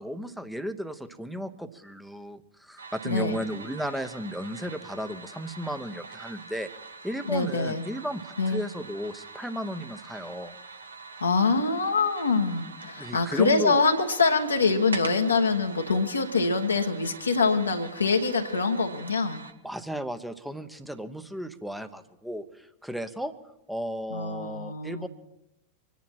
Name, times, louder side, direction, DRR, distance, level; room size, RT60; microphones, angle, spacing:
voice 1, 0.0-6.7 7.0-10.6 13.0-13.8 19.6-23.3 23.7-25.1, equal, ahead, 10 dB, 0.9 m, -34 dB
sound 1, 2.8-19.5, right 4 dB, 75° right, 1.0 m, -44 dB
voice 2, 3.0-3.4 7.3-7.8 8.4-8.6 11.2-19.4 24.1-25.1, left 4 dB, 80° left, 2 dB, 1.3 m, -25 dB
25.5 x 10.5 x 4.5 m, 0.89 s
figure-of-eight pair, 90°, 0 cm